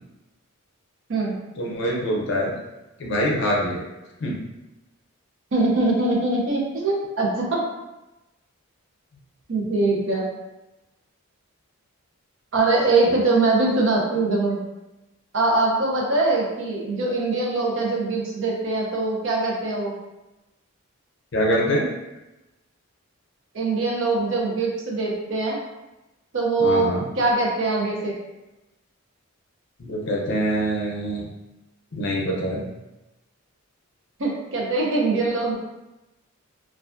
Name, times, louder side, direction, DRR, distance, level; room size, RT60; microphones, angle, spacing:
voice 1, 1.6-2.5 3.0-3.8 4.2-4.3 21.3-21.9 26.6-27.0 29.8-31.3 31.9-32.6, equal, 55° left, -2 dB, 0.5 m, -24 dB
voice 2, 5.5-7.7 9.5-10.3 12.5-14.6 15.3-19.9 23.5-25.6 26.3-28.2 34.2-35.6, right 2 dB, 60° right, -2 dB, 0.5 m, -22 dB
2.3 x 2.1 x 2.4 m, 1.0 s
head